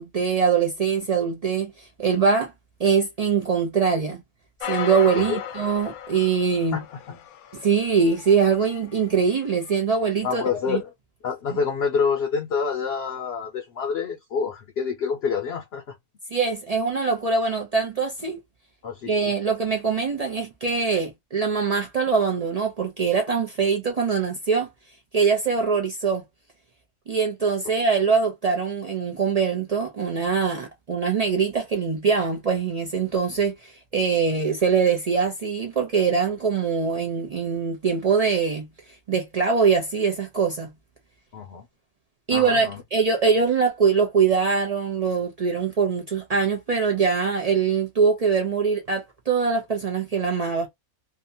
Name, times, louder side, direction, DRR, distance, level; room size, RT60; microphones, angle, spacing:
voice 1, 0.0-2.5 2.8-4.2 4.6-6.8 7.5-10.8 11.5-11.6 16.3-18.4 19.0-24.7 25.1-26.2 27.1-40.7 42.3-50.7, right 5 dB, 80° right, 0.3 m, -23 dB
sound 1, 4.6-9.1 9.7-9.8, left 9 dB, 80° left, 1.0 m, -36 dB
voice 2, 6.7-7.2 10.2-10.9 11.2-15.8 18.8-19.1 41.3-41.6 42.3-42.8, left 6 dB, 60° left, 0.7 m, -27 dB
2.8 x 2.2 x 2.6 m
omnidirectional pair, 1.5 m